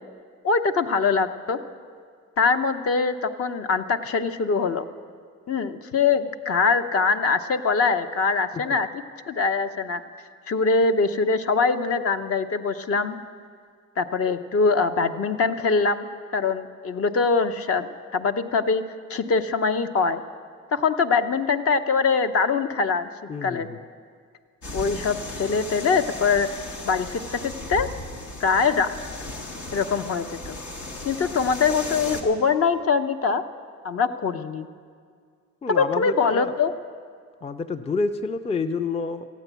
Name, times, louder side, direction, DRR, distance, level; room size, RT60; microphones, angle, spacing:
voice 1, 0.4-1.6 2.4-4.8 5.5-8.9 9.3-10.0 10.5-13.2 14.0-16.1 16.3-18.8 19.1-20.2 20.7-23.1 23.4-23.7 24.7-26.5 26.8-27.9 28.4-28.9 29.7-30.6 31.0-33.4 33.8-34.7 35.7-36.7, left 4 dB, 50° left, 9 dB, 0.8 m, -23 dB
voice 2, 23.3-23.8 35.6-36.5 37.4-39.3, left 4 dB, 20° left, 10 dB, 0.5 m, -28 dB
sound 1, 24.6-32.2, left 2 dB, 75° left, 1.8 m, -36 dB
14.5 x 9.1 x 8.1 m, 2.1 s
cardioid pair, 90°, 30 cm